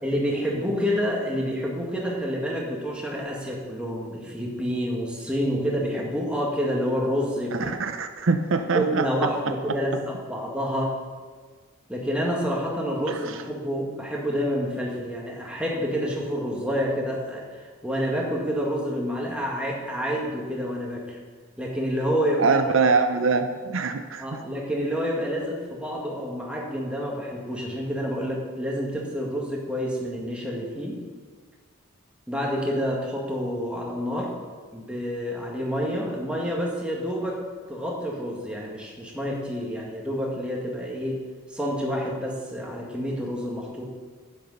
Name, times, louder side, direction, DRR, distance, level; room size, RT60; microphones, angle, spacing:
voice 1, 0.0-7.7 8.7-11.0 11.9-21.2 21.6-22.6 24.2-31.0 32.3-34.3 34.7-37.4 37.7-41.2 41.5-43.9, equal, 5° right, -2 dB, 1.8 m, -28 dB
voice 2, 7.5-9.3 13.1-13.3 22.4-24.4, right 4 dB, 65° right, 7 dB, 0.6 m, -24 dB
11.0 x 8.9 x 5.5 m, 1.5 s
head